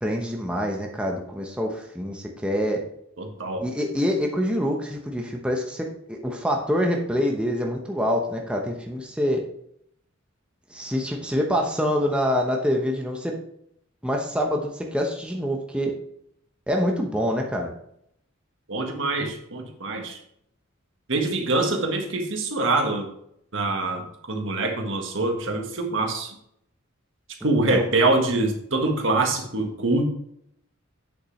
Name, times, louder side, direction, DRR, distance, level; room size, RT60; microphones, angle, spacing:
voice 1, 0.0-2.8 3.6-9.4 10.7-13.4 14.0-15.9 16.7-17.7 27.4-27.9, equal, 5° right, 0 dB, 0.8 m, -26 dB
voice 2, 3.2-3.6 18.7-20.2 21.1-23.1 23.5-26.3 27.4-30.0, right 2 dB, 65° right, 3 dB, 1.5 m, -24 dB
8.6 x 6.7 x 3.2 m, 0.72 s
head